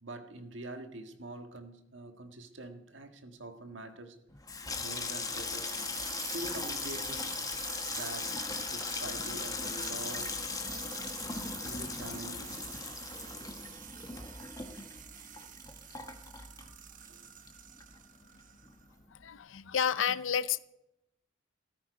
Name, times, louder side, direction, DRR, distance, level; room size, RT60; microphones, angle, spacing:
voice 1, 0.0-4.2 4.8-5.9 6.3-7.4 7.9-8.4 8.7-10.5 11.6-12.7 17.1-17.3, right 2 dB, 70° right, 1.7 m, -45 dB
sound 1, 1.5-1.6 2.6-2.7 4.8-18.9, right 9 dB, 40° right, 1.1 m, -47 dB
Water tap faucet / Sink (filling or washing), 4.3-17.2 17.5-18.1 18.4-18.7, left 4 dB, 20° left, 1.3 m, -38 dB
voice 2, 19.2-20.6, left 8 dB, 75° left, 0.6 m, -30 dB
18.0 x 13.0 x 5.2 m
head